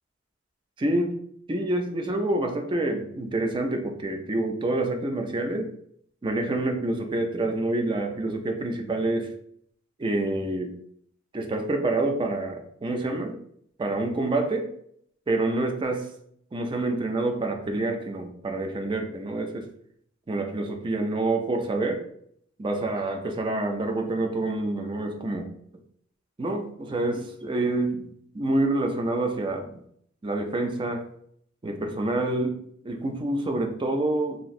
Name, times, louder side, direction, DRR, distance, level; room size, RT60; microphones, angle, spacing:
voice 1, 0.8-1.1 1.5-5.7 6.2-9.3 10.0-10.7 11.3-13.3 13.8-14.7 15.3-16.1 16.5-19.7 20.3-22.0 22.6-25.5 26.4-28.1 28.3-29.8 30.2-31.0 31.6-34.4, right 2 dB, 25° right, 4 dB, 0.4 m, -27 dB
2.9 x 2.6 x 2.4 m, 0.67 s
head